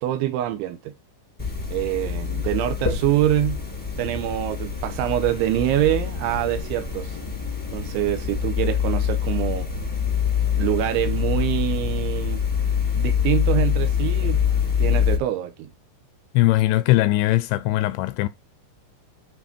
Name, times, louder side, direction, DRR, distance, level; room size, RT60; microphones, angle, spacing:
voice 1, 0.0-0.9 1.7-3.6 4.0-7.1 7.7-9.7 10.6-12.4 13.0-14.4 14.8-15.7, right 13 dB, 80° right, 3.3 m, -25 dB
sound 1, 1.4-15.2, left 8 dB, 10° left, 1.3 m, -25 dB
voice 2, 16.3-18.3, left 17 dB, 85° left, 2.7 m, -20 dB
10.0 x 4.1 x 4.3 m
omnidirectional pair, 5.6 m